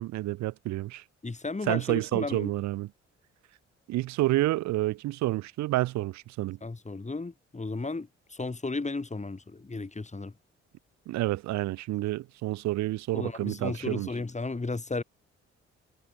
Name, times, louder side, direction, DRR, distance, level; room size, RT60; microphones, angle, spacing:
voice 1, 0.0-1.0 1.7-2.9 3.9-6.6 11.1-14.1, right 17 dB, 65° right, 0.5 m, -29 dB
voice 2, 1.2-2.5 6.6-10.3 13.1-15.0, left 3 dB, 25° left, 3.0 m, -34 dB
hypercardioid pair, 50°, 30 cm